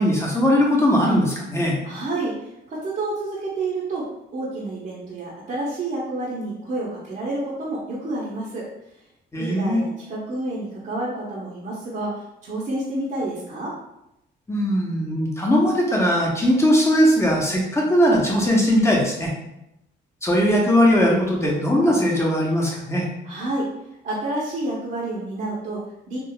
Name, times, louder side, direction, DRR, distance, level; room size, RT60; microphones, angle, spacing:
voice 1, 0.0-1.8 9.3-9.8 14.5-19.3 20.2-23.1, equal, 15° left, -2 dB, 0.8 m, -19 dB
voice 2, 1.8-8.7 9.4-13.8 23.2-23.7 24.0-26.2, right 2 dB, 45° right, -6 dB, 0.8 m, -29 dB
3.8 x 2.3 x 2.2 m, 0.86 s
cardioid pair, 90°, 20 cm